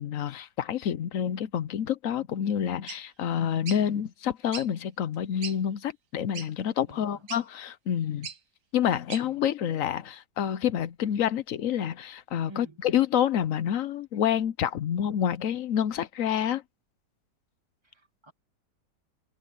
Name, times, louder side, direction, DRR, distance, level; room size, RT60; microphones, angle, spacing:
voice 1, 0.0-8.3 8.7-16.6, left 9 dB, 60° left, 1.0 m, -28 dB
sound 1, 2.9-3.0 3.7-3.8 4.5-4.7 5.1-5.2 5.4-5.6 6.3-6.5 7.3-7.4 8.2-8.4 9.1-9.2, right 7 dB, 60° right, 1.6 m, -38 dB
voice 2, 6.9-7.3 9.2-9.5 12.5-12.8 17.8-18.3, right 3 dB, 15° right, 2.2 m, -49 dB
omnidirectional pair, 1.8 m